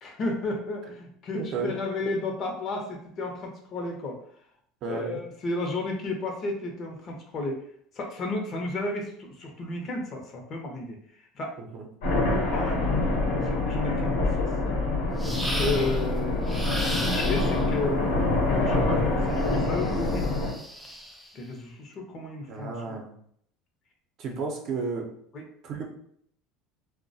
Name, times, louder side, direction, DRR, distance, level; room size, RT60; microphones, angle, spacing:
voice 1, 0.0-4.2 4.9-7.6 8.0-11.0 11.3-11.5 12.5-12.9 13.4-14.4 15.3-20.3 21.3-23.0 25.3-25.4, left 2 dB, 45° left, 2 dB, 0.6 m, -33 dB
voice 2, 1.3-1.7 4.8-5.2 11.6-11.8 22.5-23.1 24.2-25.1 25.6-25.8, right 4 dB, 55° right, 2 dB, 0.6 m, -32 dB
sound 1, 12.0-20.5, left 2 dB, 85° left, 0.9 m, -25 dB
sound 2, 15.2-16.1 16.5-17.7 19.4-21.3, equal, 5° right, 0.4 m, -35 dB
2.2 x 2.1 x 2.6 m, 0.66 s
supercardioid pair, 95°, 0 cm